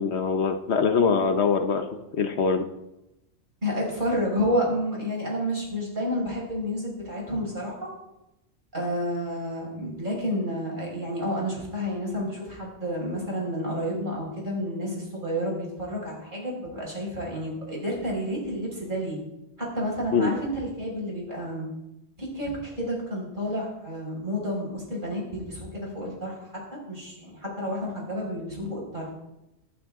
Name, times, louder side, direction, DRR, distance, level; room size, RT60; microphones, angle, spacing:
voice 1, 0.0-1.9 2.1-2.7 20.1-20.3, left 5 dB, 65° left, 7 dB, 1.1 m, -23 dB
voice 2, 3.6-7.9 8.7-19.2 19.6-21.7 22.2-26.3 26.9-29.1, equal, 40° right, -3 dB, 5.6 m, -30 dB
24.5 x 8.7 x 3.6 m, 0.92 s
omnidirectional pair, 1.3 m